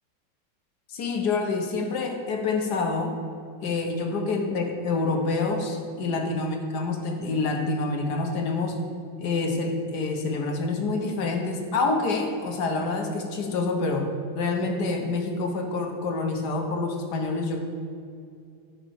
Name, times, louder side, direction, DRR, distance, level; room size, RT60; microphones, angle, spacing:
voice 1, 0.9-3.2 3.6-8.8 9.2-17.6, left 3 dB, 60° left, 3 dB, 1.4 m, -27 dB
15.0 x 5.2 x 4.7 m, 2.4 s
omnidirectional pair, 2.3 m